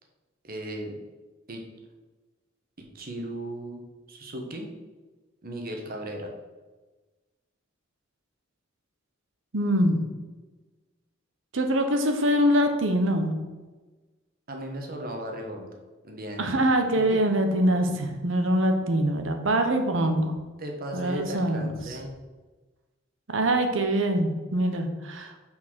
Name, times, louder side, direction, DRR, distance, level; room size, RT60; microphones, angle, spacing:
voice 1, 0.4-0.9 1.5-1.6 2.8-3.8 4.1-4.7 5.4-6.3 14.5-15.7 16.0-16.6 17.1-17.2 20.6-22.1, right 1 dB, 50° right, 2 dB, 1.2 m, -36 dB
voice 2, 9.5-10.0 11.5-13.3 16.4-20.3 20.9-21.6 23.3-25.3, right 1 dB, 70° right, 5 dB, 1.0 m, -24 dB
6.1 x 4.5 x 6.2 m, 1.2 s
head